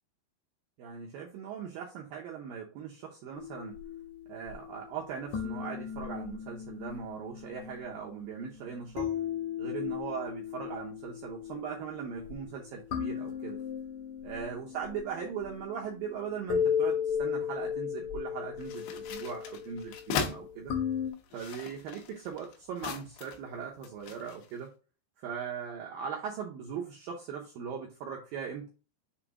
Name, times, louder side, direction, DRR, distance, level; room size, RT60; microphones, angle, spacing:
voice 1, 0.8-3.8 4.3-9.1 9.6-13.6 14.2-20.7 21.3-24.7 25.2-28.7, right 7 dB, 80° right, -1 dB, 2.0 m, -39 dB
sound 1, 3.3-21.1, left 8 dB, 70° left, 1.7 m, -36 dB
sound 2, 18.6-20.4 21.1-23.5 23.8-24.5, left 7 dB, 90° left, 3.2 m, -38 dB
7.3 x 2.7 x 4.9 m, 0.34 s
omnidirectional pair, 5.1 m